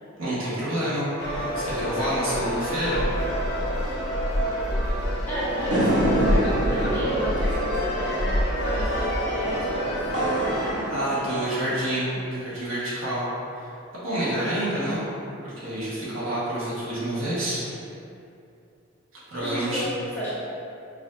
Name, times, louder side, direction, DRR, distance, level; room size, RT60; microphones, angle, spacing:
voice 1, 0.2-3.0 10.9-13.3 13.5-15.1 15.4-17.6 19.3-19.8, right 1 dB, 80° right, -9 dB, 1.2 m, -28 dB
sound 1, 1.2-10.7, equal, 55° left, 0.7 m, -27 dB
voice 2, 5.2-8.4 8.6-12.2 19.4-20.5, equal, 10° left, -11 dB, 1.0 m, -32 dB
sound 2, 5.7-12.2, equal, 60° right, 0.9 m, -29 dB
4.8 x 2.5 x 2.4 m, 2.6 s
head